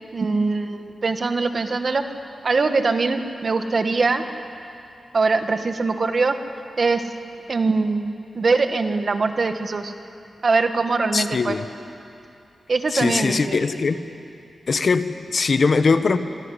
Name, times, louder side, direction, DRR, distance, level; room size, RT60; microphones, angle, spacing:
voice 1, 0.1-2.0 2.4-4.2 5.1-6.3 6.8-7.0 7.5-9.9 10.4-11.5 12.7-13.5, right 3 dB, 50° right, 7 dB, 1.5 m, -22 dB
voice 2, 11.1-11.6 12.9-14.0 14.7-16.2, left 4 dB, 55° left, 10 dB, 1.0 m, -21 dB
25.5 x 13.5 x 9.9 m, 2.7 s
wide cardioid pair, 95°, 0 cm